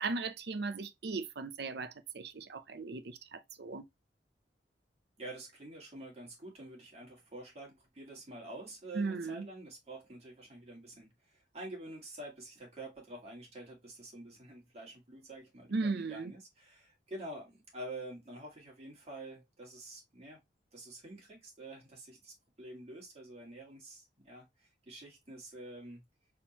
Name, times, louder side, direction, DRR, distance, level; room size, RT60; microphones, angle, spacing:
voice 1, 0.0-3.9 8.9-9.5 15.7-16.3, right 3 dB, 65° right, 0.6 m, -37 dB
voice 2, 5.2-20.4 20.7-26.0, right 1 dB, 35° right, 2.4 m, -48 dB
4.3 x 3.7 x 2.9 m
head